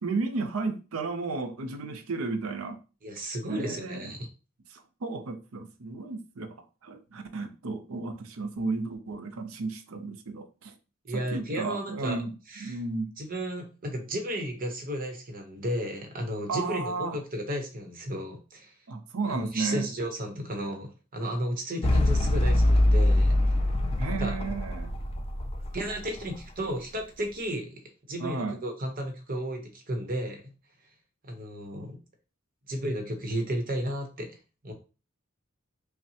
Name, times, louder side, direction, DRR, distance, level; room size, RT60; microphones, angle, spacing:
voice 1, 0.0-2.8 3.5-4.1 4.7-6.6 6.8-10.7 11.1-12.3 12.6-13.1 16.5-17.2 18.9-19.9 24.0-24.9 28.2-28.6, right 3 dB, 80° right, 0.6 m, -33 dB
voice 2, 3.0-4.3 11.0-12.2 12.5-12.8 13.2-18.7 19.3-23.4 24.2-24.3 25.7-27.8 28.1-30.4 31.3-32.0 32.7-34.4 34.6-34.7, equal, 45° right, 0.9 m, -33 dB
sound 1, 21.8-26.4, left 1 dB, 30° left, 0.4 m, -24 dB
5.6 x 2.1 x 2.8 m
head